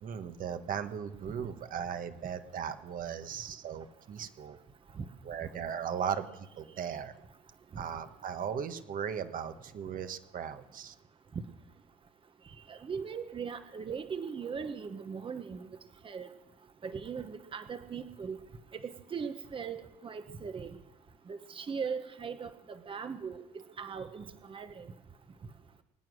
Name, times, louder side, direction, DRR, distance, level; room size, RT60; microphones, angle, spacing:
voice 1, 0.0-4.6 5.2-7.1 7.8-10.9, right 8 dB, 55° right, 8 dB, 1.4 m, -37 dB
voice 2, 12.7-15.7 16.0-16.3 16.8-18.4 18.8-20.7 21.3-24.9, right 6 dB, 30° right, 9 dB, 1.1 m, -39 dB
22.5 x 9.4 x 6.3 m, 0.95 s
cardioid pair, 110°, 17 cm